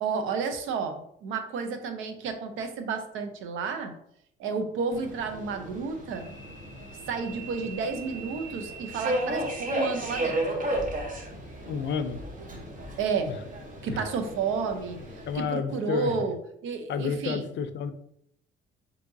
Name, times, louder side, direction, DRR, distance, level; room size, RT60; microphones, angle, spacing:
voice 1, 0.0-3.9 4.4-6.3 7.1-10.6 13.0-13.3 13.8-15.0 15.3-17.5, right 5 dB, 85° right, 7 dB, 0.6 m, -31 dB
Subway metro underground, 4.9-15.4, right 1 dB, 40° right, 1.0 m, -34 dB
voice 2, 11.7-12.2 13.3-13.4 13.9-14.0 15.3-16.3 16.9-17.9, left 6 dB, 65° left, 11 dB, 0.4 m, -30 dB
4.5 x 2.8 x 2.6 m, 0.71 s
cardioid pair, 90°, 20 cm